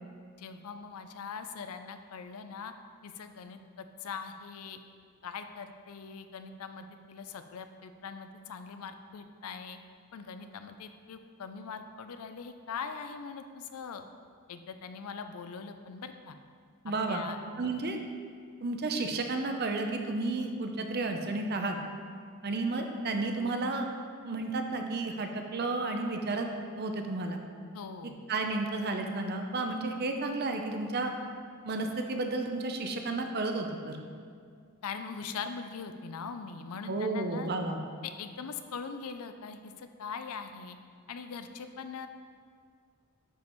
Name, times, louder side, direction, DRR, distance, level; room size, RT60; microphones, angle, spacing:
voice 1, 0.4-2.7 3.0-4.8 5.2-9.8 10.1-14.0 14.5-16.4 17.1-17.7 27.7-28.2 34.8-37.5 38.0-40.8 41.1-42.1, left 5 dB, 75° left, 8 dB, 0.5 m, -41 dB
voice 2, 16.8-17.2 17.6-18.0 18.6-21.8 22.4-23.9 24.2-27.4 28.3-31.1 31.6-34.0 36.9-37.8, right 3 dB, 45° right, 4 dB, 0.6 m, -32 dB
10.0 x 5.3 x 3.1 m, 2.1 s
head